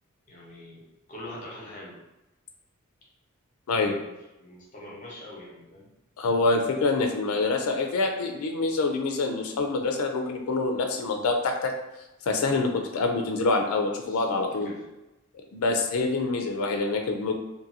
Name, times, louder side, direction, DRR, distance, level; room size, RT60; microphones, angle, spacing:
voice 1, 0.3-0.8 1.1-2.0 4.4-5.9 12.4-12.6 14.0-14.9, left 1 dB, 35° left, -4 dB, 0.9 m, -43 dB
voice 2, 6.2-11.7 12.3-14.7 15.5-17.3, left 3 dB, 85° left, 3 dB, 0.4 m, -26 dB
2.6 x 2.5 x 2.7 m, 0.97 s
head